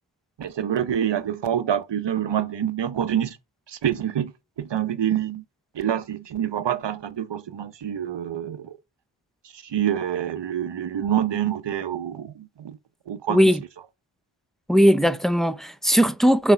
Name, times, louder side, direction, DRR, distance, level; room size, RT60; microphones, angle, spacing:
voice 1, 0.4-3.4 3.7-5.4 5.7-8.8 9.5-12.8 13.1-13.5, right 10 dB, 60° right, 0.7 m, -26 dB
voice 2, 14.7-16.5, equal, ahead, 0.4 m, -18 dB
6.1 x 4.1 x 5.6 m
wide cardioid pair, 120°, 47 cm